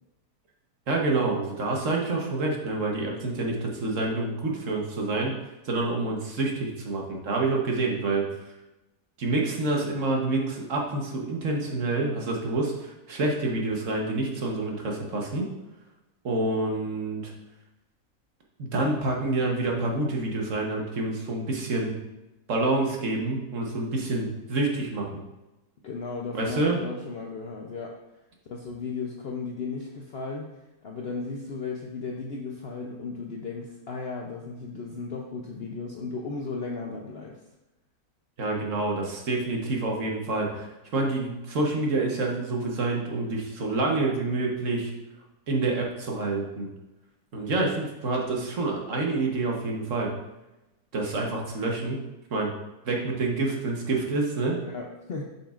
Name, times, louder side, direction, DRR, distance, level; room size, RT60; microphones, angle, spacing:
voice 1, 0.9-5.4 5.6-8.2 9.2-15.5 16.2-17.3 18.6-21.9 22.5-25.1 26.3-26.8 38.4-44.9 45.5-46.7 47.3-50.1 50.9-52.0 52.3-52.5 52.8-54.6, right 2 dB, 55° right, 0 dB, 1.3 m, -27 dB
voice 2, 25.8-27.9 28.4-30.5 30.8-37.4 54.6-55.2, left 4 dB, 60° left, 0 dB, 0.6 m, -35 dB
7.2 x 5.5 x 2.4 m, 0.98 s
omnidirectional pair, 1.6 m